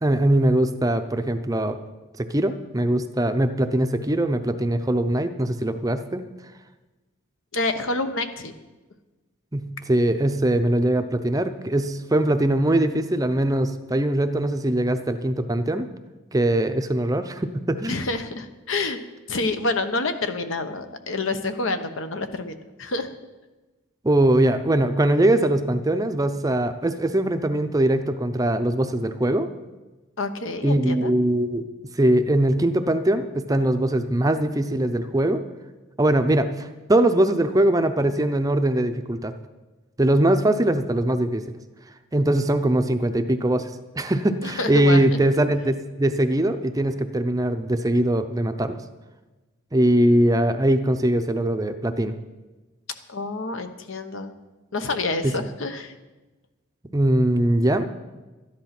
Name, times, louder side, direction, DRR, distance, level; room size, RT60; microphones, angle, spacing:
voice 1, 0.0-1.8 2.2-6.2 9.5-15.9 16.3-18.0 24.0-29.5 30.6-31.7 31.9-35.4 36.0-39.3 40.0-41.4 42.1-48.8 49.7-52.2 55.2-55.4 56.9-57.9, right 1 dB, 15° right, 8 dB, 0.5 m, -21 dB
voice 2, 7.5-8.5 17.9-19.0 19.3-23.1 30.2-31.1 44.4-45.0 53.1-54.3 54.7-55.9, left 3 dB, 70° left, 8 dB, 1.0 m, -28 dB
13.0 x 11.0 x 5.9 m, 1.2 s
head